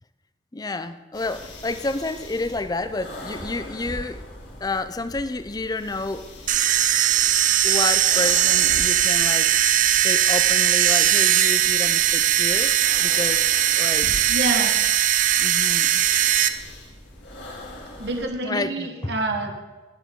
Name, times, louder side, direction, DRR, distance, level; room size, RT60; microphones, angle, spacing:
voice 1, 0.5-4.2 4.6-6.3 6.7-6.9 7.6-13.5 13.8-14.2 15.4-16.1 18.4-19.1, left 2 dB, 20° left, 12 dB, 0.5 m, -30 dB
sound 1, 1.1-18.3, left 1 dB, 75° left, 2.8 m, -41 dB
sound 2, 6.5-16.5, right 11 dB, 45° right, 0.6 m, -19 dB
voice 2, 14.3-14.8 18.0-19.6, right 2 dB, 65° right, 3 dB, 1.4 m, -27 dB
20.0 x 7.1 x 3.7 m, 1.3 s
head